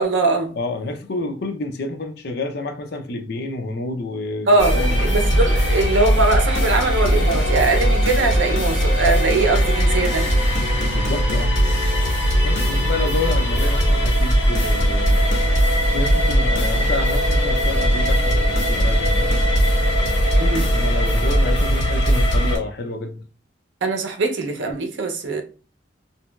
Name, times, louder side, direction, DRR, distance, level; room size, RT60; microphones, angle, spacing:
voice 1, 0.0-0.5 4.5-10.3 20.4-20.7 23.8-25.4, right 3 dB, 75° right, 0.6 m, -21 dB
voice 2, 0.6-5.2 10.9-11.6 12.4-15.2 15.9-19.3 20.7-23.2, left 2 dB, 55° left, 0.5 m, -29 dB
sound 1, 4.6-22.6, equal, 80° left, 1.3 m, -19 dB
2.8 x 2.6 x 2.3 m
head